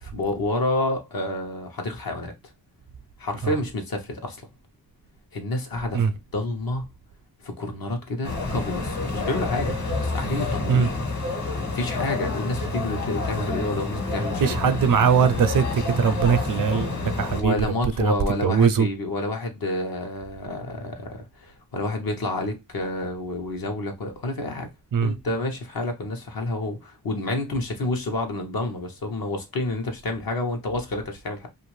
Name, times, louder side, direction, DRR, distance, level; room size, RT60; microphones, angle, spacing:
voice 1, 0.0-2.3 3.2-4.4 5.3-6.8 7.4-10.9 11.7-14.6 17.3-24.7 25.0-31.5, left 2 dB, 70° left, 0.9 m, -29 dB
sound 1, 8.2-17.4, left 3 dB, 50° left, 1.4 m, -28 dB
voice 2, 14.4-18.9 24.9-25.2, right 7 dB, 60° right, 0.5 m, -21 dB
2.6 x 2.5 x 3.0 m
cardioid pair, 55°, 37 cm